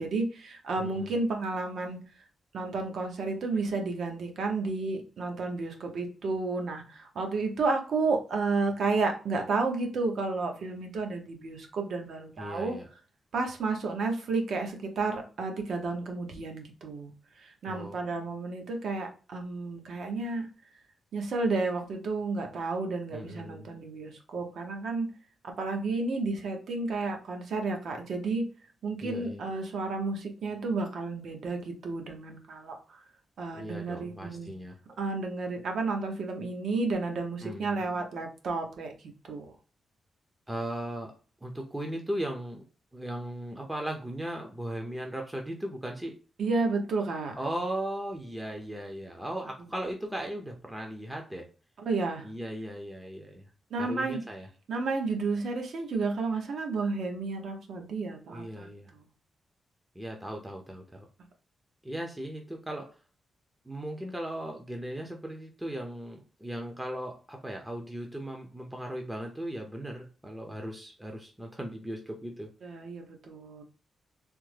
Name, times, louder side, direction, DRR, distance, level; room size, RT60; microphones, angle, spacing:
voice 1, 0.0-2.0 2.5-12.8 13.3-17.1 17.4-20.5 21.1-25.1 25.4-28.5 28.8-33.0 33.4-34.5 35.0-38.9 39.3-39.5 46.4-47.4 51.9-52.3 53.7-54.2 54.7-59.1 72.6-73.6, right 3 dB, 70° right, 3 dB, 0.8 m, -31 dB
voice 2, 0.8-1.2 12.4-12.9 17.7-18.0 23.1-23.7 29.0-29.4 33.5-34.8 37.4-37.8 40.5-41.1 41.4-42.6 42.9-46.2 47.4-51.5 52.2-53.5 53.8-54.5 58.3-58.9 59.9-61.1 61.8-62.9 63.6-72.5, right 1 dB, 10° right, 2 dB, 0.5 m, -37 dB
3.4 x 2.0 x 3.2 m, 0.37 s
wide cardioid pair, 130°, 0 cm